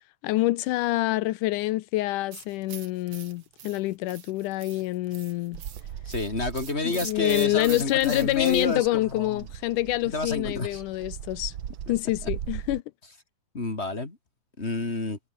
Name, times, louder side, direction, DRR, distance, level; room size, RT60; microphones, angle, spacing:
voice 1, 0.2-5.6 6.8-11.5 11.9-12.8, left 17 dB, 80° left, 1.9 m, -26 dB
sound 1, 2.3-8.8, right 9 dB, 50° right, 2.3 m, -44 dB
Bird vocalization bird call bird song, 5.5-12.8, right 10 dB, 90° right, 1.1 m, -40 dB
voice 2, 6.1-9.5 10.1-10.8 13.5-14.2 14.6-15.2, left 2 dB, 20° left, 2.7 m, -29 dB
omnidirectional pair, 4.2 m